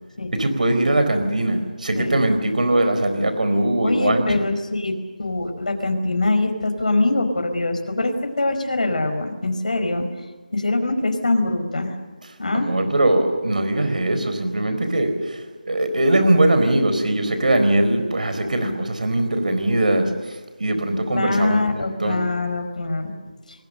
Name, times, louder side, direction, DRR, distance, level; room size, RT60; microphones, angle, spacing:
voice 1, 0.3-4.2 12.5-22.2, right 1 dB, 65° right, 8 dB, 4.3 m, -21 dB
voice 2, 3.8-10.0 10.5-11.9 12.4-12.7 18.6-18.9 21.1-23.1, left 2 dB, 60° left, 5 dB, 5.0 m, -23 dB
29.0 x 20.5 x 6.8 m, 1.3 s
figure-of-eight pair, 175°, 5 cm